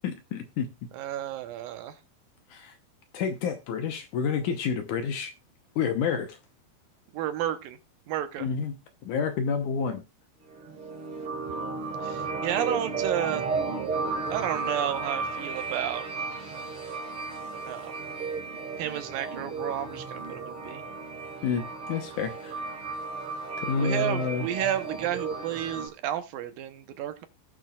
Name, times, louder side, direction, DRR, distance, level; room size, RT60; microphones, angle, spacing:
voice 1, 0.0-0.7 2.5-2.7 3.1-5.3 5.8-6.4 8.4-8.8 9.0-10.0 21.4-22.6 23.6-24.5, left 6 dB, 70° left, 2.1 m, -29 dB
voice 2, 0.9-2.0 7.1-7.8 8.1-8.5 12.0-13.4 14.3-16.0 17.7-18.1 18.8-20.8 23.8-27.3, right 11 dB, 75° right, 2.6 m, -32 dB
sound 1, 10.5-25.9, right 4 dB, 40° right, 3.5 m, -34 dB
18.0 x 6.2 x 2.4 m
omnidirectional pair, 4.2 m